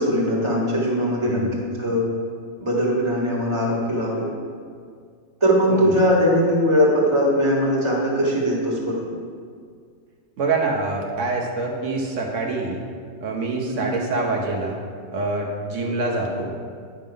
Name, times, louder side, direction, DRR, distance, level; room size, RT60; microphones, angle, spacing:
voice 1, 0.0-2.1 2.6-4.3 5.4-9.0 13.7-13.9, equal, 25° right, -4 dB, 1.8 m, -20 dB
voice 2, 1.2-1.5 5.7-5.9 10.4-12.8 13.2-14.8 15.1-16.5, right 3 dB, 85° right, -1 dB, 1.3 m, -25 dB
9.9 x 5.8 x 5.1 m, 2.1 s
omnidirectional pair, 1.2 m